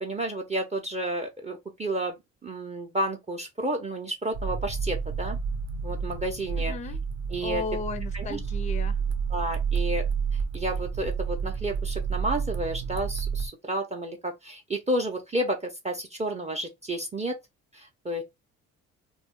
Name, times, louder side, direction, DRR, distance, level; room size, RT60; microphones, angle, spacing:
voice 1, 0.0-5.4 5.8-6.7 7.3-7.6 8.1-8.4 9.3-10.0 10.3-17.4 17.7-18.2, right 1 dB, 20° right, 0.6 m, -31 dB
sound 1, 4.3-13.5, right 6 dB, 60° right, 0.7 m, -30 dB
voice 2, 6.7-7.0 7.4-9.0, left 4 dB, 25° left, 0.4 m, -34 dB
2.3 x 2.1 x 3.5 m
cardioid pair, 90°, 30 cm